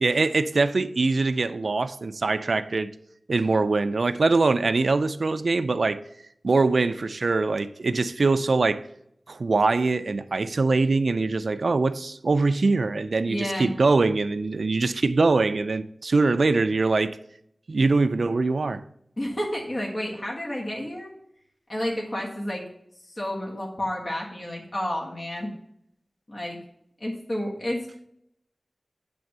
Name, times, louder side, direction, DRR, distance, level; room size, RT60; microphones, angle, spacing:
voice 1, 0.0-2.9 3.3-6.0 6.4-8.8 9.3-17.2 17.7-18.8, right 3 dB, 80° right, 0.4 m, -23 dB
voice 2, 13.3-13.7 19.2-21.1 21.7-22.6 23.0-25.5 26.3-26.6 27.0-28.1, left 1 dB, 50° left, 1.6 m, -30 dB
8.9 x 3.4 x 6.6 m
wide cardioid pair, 70°, 0 cm